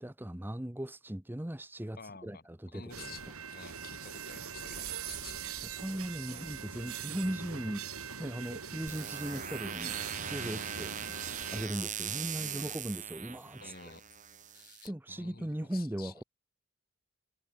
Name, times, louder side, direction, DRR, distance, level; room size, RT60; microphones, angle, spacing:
voice 1, 0.0-3.2 5.8-7.9 8.2-10.9 11.2-13.7 14.5-16.2, right 1 dB, 10° right, 0.8 m, -38 dB
voice 2, 2.0-5.5 6.3-6.5 10.4-10.7 12.4-12.8 13.6-14.0 14.5-16.1, left 5 dB, 40° left, 3.0 m, -51 dB
sound 1, 2.9-11.7, right 7 dB, 75° right, 3.6 m, -41 dB
sound 2, 8.9-14.9, right 8 dB, 35° right, 4.7 m, -41 dB
head